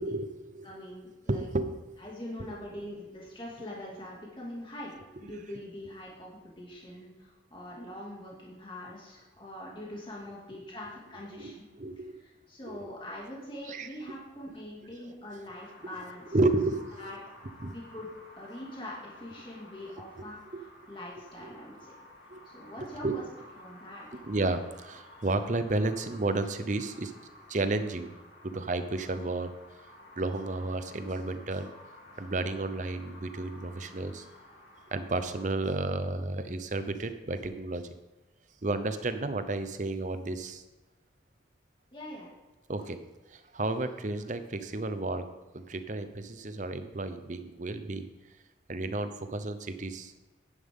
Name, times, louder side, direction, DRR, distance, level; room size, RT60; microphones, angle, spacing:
voice 1, 0.0-0.7 1.3-1.7 11.3-12.2 12.7-12.9 13.7-13.9 16.3-16.8 17.6-17.7 20.5-20.7 21.4-21.5 22.3-22.4 23.0-23.2 24.2-27.1 27.5-28.1 28.4-29.5 30.2-31.7 32.2-34.2 34.9-37.8 38.6-40.6 42.7-43.0 43.3-45.3 45.5-48.1 48.7-50.1, right 2 dB, 40° right, 10 dB, 0.7 m, -32 dB
voice 2, 0.6-1.5 2.0-11.6 12.1-16.4 17.0-17.2 17.7-18.1 18.4-20.6 20.9-21.9 22.5-23.2 23.6-24.2 41.9-42.3, left 1 dB, 25° left, -4 dB, 2.3 m, -43 dB
sound 1, 15.5-35.5, left 1 dB, 60° left, 3.1 m, -53 dB
11.0 x 10.0 x 3.7 m, 1.1 s
head